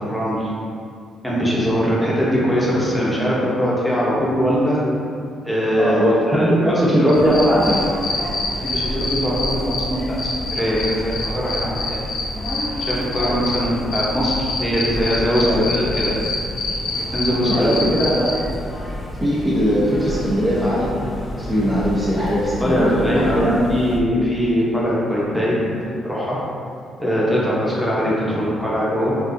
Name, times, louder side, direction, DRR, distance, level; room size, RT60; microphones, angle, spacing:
voice 1, 0.1-0.5 1.2-4.8 5.4-6.0 6.3-7.2 8.7-10.0 10.5-12.0 12.9-16.1 17.1-17.8 22.6-26.4 27.0-29.2, equal, 5° left, -6 dB, 1.0 m, -21 dB
voice 2, 5.8-7.8 15.4-15.7 17.5-18.3 19.2-21.0 21.4-23.6, equal, 20° right, -7 dB, 0.8 m, -19 dB
sound 1, 7.1-9.8 10.2-13.6 13.9-18.3, left 3 dB, 70° left, 0.8 m, -25 dB
sound 2, 7.1-24.0, left 1 dB, 20° left, 0.6 m, -30 dB
5.9 x 2.5 x 2.7 m, 2.3 s
cardioid pair, 90°, 0 cm